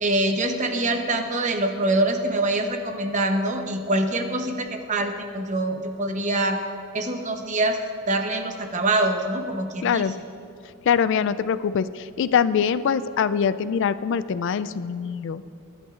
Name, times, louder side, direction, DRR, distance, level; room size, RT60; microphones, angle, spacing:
voice 1, 0.0-6.6 6.9-7.8 8.1-10.1, right 2 dB, 35° right, 5 dB, 0.8 m, -24 dB
voice 2, 9.8-10.1 10.9-15.4, left 7 dB, 55° left, 14 dB, 0.3 m, -23 dB
21.5 x 10.5 x 2.5 m, 2.5 s
head